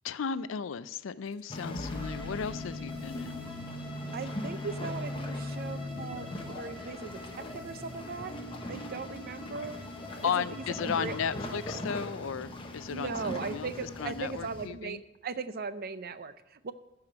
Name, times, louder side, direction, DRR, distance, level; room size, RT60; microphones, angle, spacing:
voice 1, 0.0-3.5 10.2-15.0, left 7 dB, 70° left, 16 dB, 0.4 m, -35 dB
sound 1, 1.3-11.8, equal, 55° left, 1.3 m, -49 dB
sound 2, 1.5-14.7, left 1 dB, 25° left, 1.1 m, -39 dB
Bowed string instrument, 1.9-11.9, left 2 dB, 5° right, 1.5 m, -49 dB
voice 2, 4.1-8.3 8.7-9.8 10.2-11.2 12.9-16.7, right 4 dB, 50° right, 13 dB, 0.5 m, -38 dB
14.5 x 4.9 x 6.2 m, 1.0 s
head